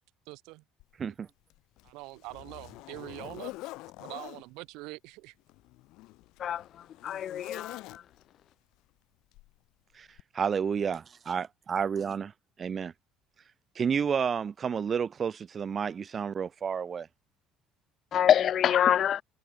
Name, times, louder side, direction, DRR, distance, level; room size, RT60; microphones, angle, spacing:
voice 1, 0.3-0.6 1.1-1.2 1.8-3.5 4.0-5.3, right 23 dB, 75° right, 4.5 m, -44 dB
Zipper (clothing), 0.8-0.9 1.5-4.4 5.4-8.4 9.3-9.6 10.2-10.3, left 20 dB, 70° left, 2.9 m, -45 dB
voice 2, 7.0-7.8 18.1-19.2, left 10 dB, 40° left, 1.1 m, -24 dB
voice 3, 10.3-12.3 12.6-12.9 13.7-17.1, right 7 dB, 25° right, 3.1 m, -30 dB
cardioid pair, 165°, 0 cm